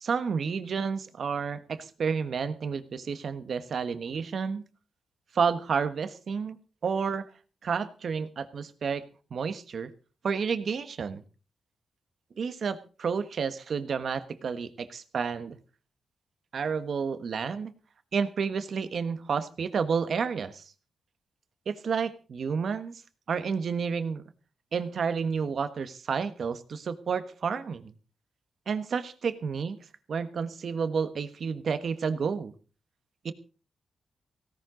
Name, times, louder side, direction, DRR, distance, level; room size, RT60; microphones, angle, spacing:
voice 1, 0.0-4.6 5.3-6.6 6.8-7.2 7.6-9.9 10.2-11.2 12.4-15.6 16.5-17.7 18.1-20.6 21.7-23.0 23.3-24.2 24.7-27.9 28.7-29.8 30.1-32.5 33.2-33.3, right 6 dB, 60° right, 11 dB, 1.3 m, -30 dB
17.0 x 15.5 x 3.9 m, 0.37 s
cardioid pair, 100°, 0 cm